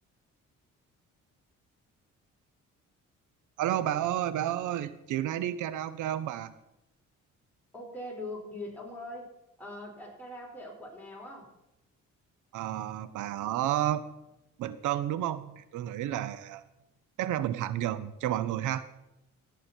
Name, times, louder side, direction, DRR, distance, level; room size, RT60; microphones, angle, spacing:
voice 1, 3.6-6.5 12.5-14.0 14.6-16.7 17.2-18.8, right 12 dB, 80° right, 15 dB, 0.6 m, -31 dB
voice 2, 7.7-9.3 9.6-11.5, left 1 dB, 5° left, -3 dB, 5.0 m, -41 dB
16.0 x 8.2 x 4.4 m, 0.89 s
cardioid pair, 90°, 30 cm